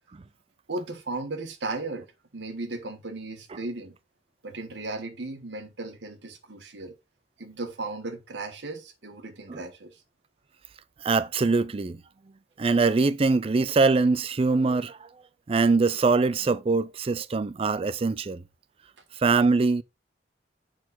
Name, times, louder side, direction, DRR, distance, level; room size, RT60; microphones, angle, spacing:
voice 1, 0.7-4.0 4.4-7.0 7.4-10.0, right 2 dB, 70° right, 1.2 m, -36 dB
voice 2, 11.0-12.0 12.6-15.1 15.5-18.4 19.2-19.8, right 3 dB, 30° right, 0.4 m, -23 dB
6.4 x 4.3 x 4.0 m
head